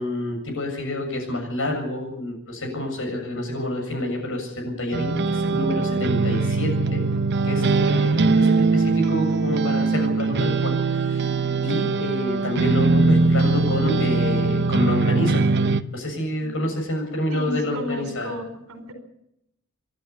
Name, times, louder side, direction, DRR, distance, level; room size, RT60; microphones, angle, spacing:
voice 1, 0.0-7.0 7.4-15.5 15.9-18.4, left 1 dB, 60° left, 2 dB, 7.4 m, -28 dB
sound 1, 4.9-15.8, right 3 dB, 50° right, 0.9 m, -21 dB
voice 2, 17.3-18.9, left 1 dB, 70° right, 8 dB, 4.5 m, -33 dB
28.0 x 11.5 x 8.6 m, 0.82 s
head